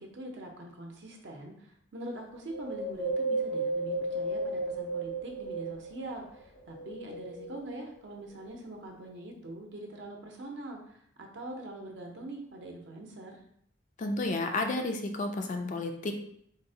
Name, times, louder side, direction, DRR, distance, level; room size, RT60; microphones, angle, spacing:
voice 1, 0.0-13.4, right 1 dB, 65° right, 1 dB, 0.6 m, -43 dB
Wind, 2.5-6.1 6.6-7.9 8.4-8.5, right 2 dB, 75° left, 0.7 m, -34 dB
voice 2, 14.0-16.1, left 2 dB, 40° left, 5 dB, 0.3 m, -31 dB
3.8 x 2.0 x 2.7 m, 0.70 s
head